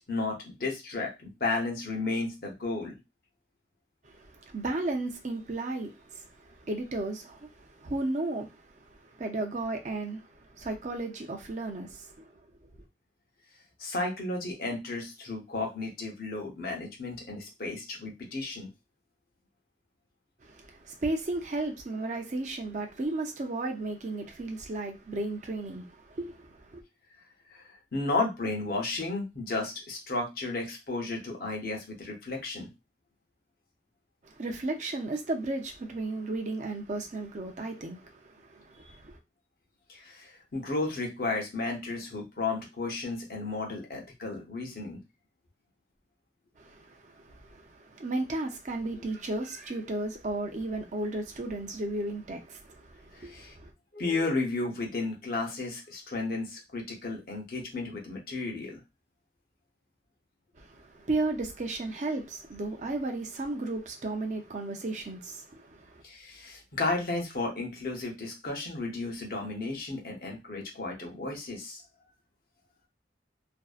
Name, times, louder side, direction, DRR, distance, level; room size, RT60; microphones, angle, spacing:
voice 1, 0.1-3.0 13.8-18.7 27.5-27.6 27.9-32.7 39.9-45.0 53.2-53.5 53.9-58.8 66.0-71.8, left 3 dB, 55° left, 0.7 m, -33 dB
voice 2, 4.2-8.8 9.2-12.3 20.4-26.8 34.2-39.2 46.6-53.7 60.6-66.0, right 2 dB, 40° right, 0.5 m, -34 dB
2.6 x 2.1 x 2.3 m
head